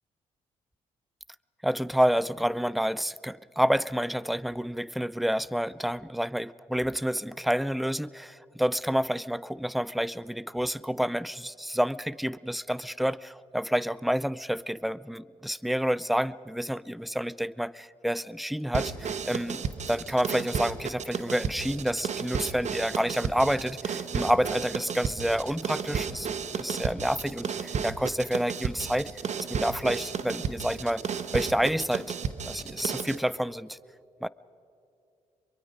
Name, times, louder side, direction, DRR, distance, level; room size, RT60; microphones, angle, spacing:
voice 1, 1.6-19.6 19.9-26.3 26.5-29.2 29.5-32.2 32.4-33.8 34.2-34.3, equal, ahead, 20 dB, 0.5 m, -29 dB
sound 1, 18.7-33.2, right 6 dB, 55° right, 1.1 m, -33 dB
25.0 x 23.0 x 5.3 m, 2.6 s
supercardioid pair, 60°, 14 cm